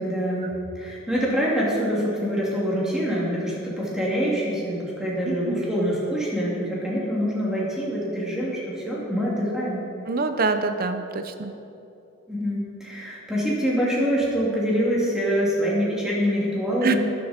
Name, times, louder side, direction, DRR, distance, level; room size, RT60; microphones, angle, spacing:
voice 1, 0.0-9.8 12.3-17.0, equal, 5° right, -6 dB, 2.7 m, -25 dB
voice 2, 5.3-5.6 10.1-11.5 16.8-17.0, right 4 dB, 45° right, 9 dB, 0.7 m, -25 dB
12.5 x 10.0 x 4.4 m, 2.8 s
head